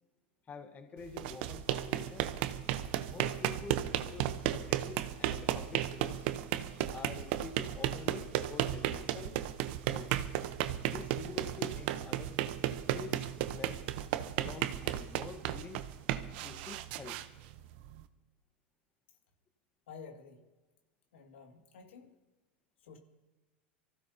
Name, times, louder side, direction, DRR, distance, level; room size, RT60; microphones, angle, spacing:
voice 1, 0.5-2.3 3.1-6.3 6.9-9.4 9.9-10.1 10.9-12.4 12.9-13.2 13.5-13.8 14.4-15.8 16.4-17.2, left 4 dB, 25° left, 7 dB, 1.2 m, -47 dB
sound 1, 1.0-18.0, right 12 dB, 65° right, 0.8 m, -34 dB
voice 2, 19.9-20.4 21.1-22.1 22.8-23.0, left 5 dB, 85° left, 3 dB, 2.1 m, -51 dB
24.0 x 15.5 x 2.8 m, 1.2 s
hypercardioid pair, 110°, 6 cm